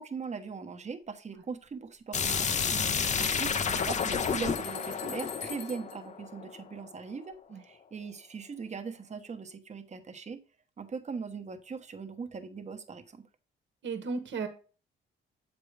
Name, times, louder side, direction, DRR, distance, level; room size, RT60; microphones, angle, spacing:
voice 1, 0.0-2.5 3.2-10.4 10.8-13.2, right 5 dB, 35° right, 7 dB, 1.1 m, -40 dB
sound 1, 2.1-6.9, left 6 dB, 35° left, 0.6 m, -31 dB
sound 2, 3.1-5.9, left 6 dB, 70° left, 1.7 m, -42 dB
voice 2, 13.8-14.5, right 4 dB, 65° right, 6 dB, 1.3 m, -35 dB
7.7 x 5.2 x 3.3 m, 0.37 s
cardioid pair, 90°, 20 cm